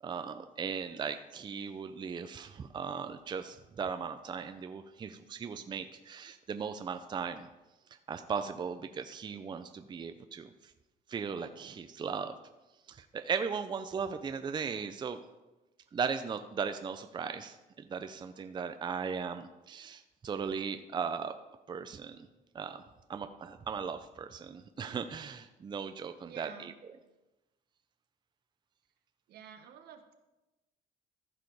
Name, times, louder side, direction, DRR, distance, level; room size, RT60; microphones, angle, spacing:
voice 1, 0.0-7.5 8.1-10.7 11.1-12.3 12.9-15.2 15.9-21.3 21.7-22.3 22.5-22.8 23.1-26.7, right 6 dB, 25° right, 9 dB, 0.5 m, -37 dB
voice 2, 26.2-26.7 29.3-30.1, right 8 dB, 70° right, 7 dB, 1.1 m, -50 dB
14.5 x 4.9 x 4.7 m, 1.0 s
cardioid pair, 110°, 17 cm